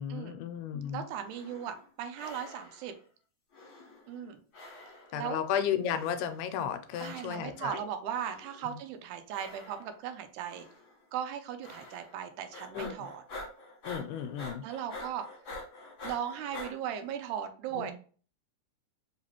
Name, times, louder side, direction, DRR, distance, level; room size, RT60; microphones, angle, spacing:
voice 1, 0.0-1.1 5.1-7.8 8.6-8.8 12.7-12.9 13.8-14.6 17.7-17.9, left 9 dB, 90° left, 9 dB, 2.1 m, -34 dB
voice 2, 0.9-2.9 4.1-4.4 5.2-5.4 7.0-10.7 11.1-13.2 14.6-15.3 16.0-17.9, right 9 dB, 80° right, 7 dB, 2.0 m, -37 dB
sound 1, 1.1-1.9 2.1-3.0 3.5-4.3 4.5-5.3 5.8-6.5 6.9-7.6 8.1-8.8 9.3-10.1 10.5-10.9 11.6-12.2 12.5-16.7, left 2 dB, 45° left, 1.2 m, -47 dB
4.8 x 2.9 x 2.9 m, 0.41 s
omnidirectional pair, 3.6 m